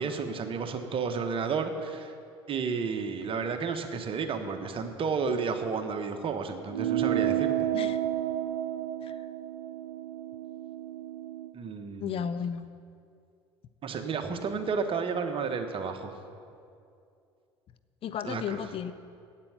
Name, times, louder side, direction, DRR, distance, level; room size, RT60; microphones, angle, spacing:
voice 1, 0.0-2.1 2.5-7.7 11.5-12.3 13.8-16.1 18.2-18.6, right 5 dB, 40° right, 7 dB, 1.2 m, -32 dB
sound 1, 6.7-11.5, right 11 dB, 80° right, 0.5 m, -31 dB
voice 2, 12.0-12.7 18.0-18.9, left 8 dB, 45° left, 12 dB, 0.5 m, -34 dB
8.9 x 8.5 x 8.0 m, 2.4 s
hypercardioid pair, 65°, 14 cm